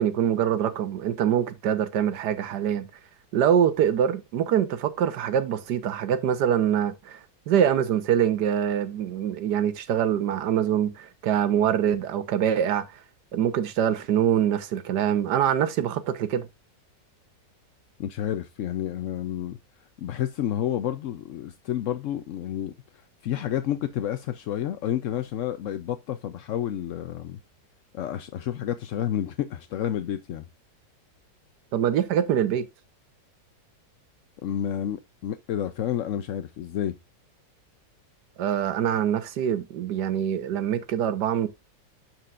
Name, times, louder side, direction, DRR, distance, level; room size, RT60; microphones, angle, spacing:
voice 1, 0.0-2.9 3.3-12.9 13.3-16.5 31.7-32.7 38.4-41.5, right 9 dB, 70° right, 1.4 m, -24 dB
voice 2, 18.0-19.6 20.0-22.7 23.2-27.4 27.9-30.4 34.4-37.0, left 11 dB, 75° left, 0.7 m, -30 dB
13.0 x 4.5 x 2.4 m
omnidirectional pair, 1.9 m